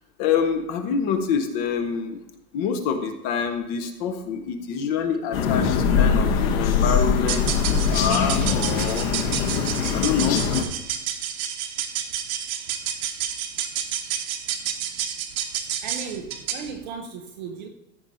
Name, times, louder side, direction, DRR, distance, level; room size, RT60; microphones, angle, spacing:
voice 1, 0.2-2.2 2.5-9.5 9.9-10.5, left 6 dB, 30° left, 8 dB, 0.7 m, -26 dB
sound 1, 5.3-10.6, left 6 dB, 55° left, 1.4 m, -22 dB
sound 2, 7.3-16.7, right 9 dB, 55° right, 1.1 m, -30 dB
voice 2, 15.8-17.7, right 5 dB, 30° right, 5 dB, 0.5 m, -36 dB
14.0 x 5.2 x 4.2 m, 0.91 s
supercardioid pair, 160°, 49 cm